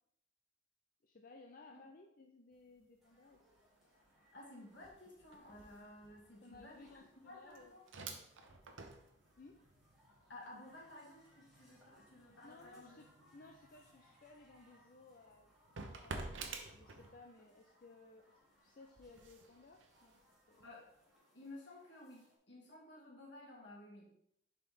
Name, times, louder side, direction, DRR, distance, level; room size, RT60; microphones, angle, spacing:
voice 1, 1.0-3.4 3.8-3.9 6.4-7.7 9.4-9.6 12.4-13.0 13.3-15.6 16.0-18.3 18.6-20.2 20.5-20.7, left 3 dB, 50° left, 2 dB, 0.5 m, -59 dB
sound 1, 2.5-2.8 3.1-17.5 17.9-21.0, right 3 dB, 80° right, 0.8 m, -53 dB
sound 2, 3.0-22.4, left 1 dB, ahead, 1.9 m, -71 dB
voice 2, 4.3-6.8 7.3-7.8 10.3-13.0 13.4-13.5 20.6-20.9 21.3-24.2, left 1 dB, 65° left, -3 dB, 2.0 m, -54 dB
7.0 x 4.5 x 3.7 m, 0.75 s
head